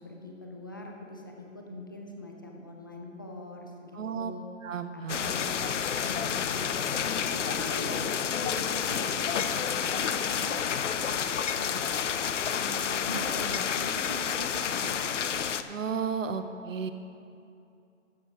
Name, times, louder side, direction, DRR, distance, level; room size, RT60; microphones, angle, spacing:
voice 1, 0.0-4.5 4.9-6.9 7.2-10.6 11.0-11.3 11.5-12.1 12.5-15.3, left 1 dB, 15° left, 1 dB, 0.5 m, -42 dB
voice 2, 3.9-4.3 4.6-5.2 15.7-16.9, right 6 dB, 75° right, 9 dB, 1.0 m, -33 dB
sound 1, 5.1-15.6, left 8 dB, 65° left, 0.7 m, -30 dB
13.5 x 7.5 x 4.8 m, 2.6 s
hypercardioid pair, 165°, 39 cm